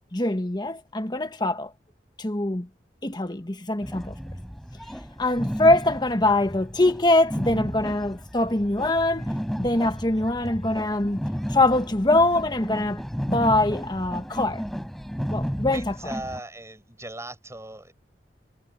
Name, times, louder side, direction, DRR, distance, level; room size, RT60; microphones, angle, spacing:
voice 1, 0.0-1.7 2.2-2.7 3.0-4.1 5.2-9.3 9.6-11.2 11.5-13.0 13.3-14.6 15.3-15.8, left 2 dB, 25° left, 1.4 m, -23 dB
sound 1, 3.8-16.4, equal, ahead, 4.5 m, -33 dB
voice 2, 15.7-17.9, right 2 dB, 15° right, 7.5 m, -38 dB
head